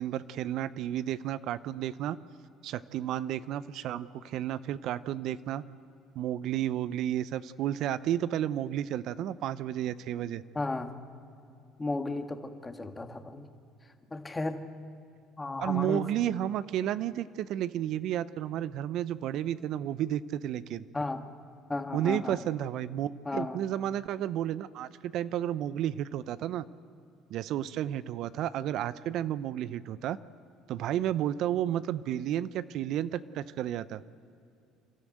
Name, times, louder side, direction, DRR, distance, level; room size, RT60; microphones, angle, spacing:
voice 1, 0.0-2.2 2.6-5.6 6.2-10.4 15.6-20.8 21.9-26.6 27.3-30.2 30.7-34.0, right 11 dB, 65° right, 16 dB, 0.6 m, -32 dB
voice 2, 10.5-10.9 11.8-13.5 14.1-14.6 15.4-16.1 20.9-21.2 21.7-22.4 23.2-23.6, left 2 dB, 20° left, 6 dB, 1.7 m, -34 dB
28.5 x 13.0 x 9.2 m, 2.6 s
supercardioid pair, 75°, 0 cm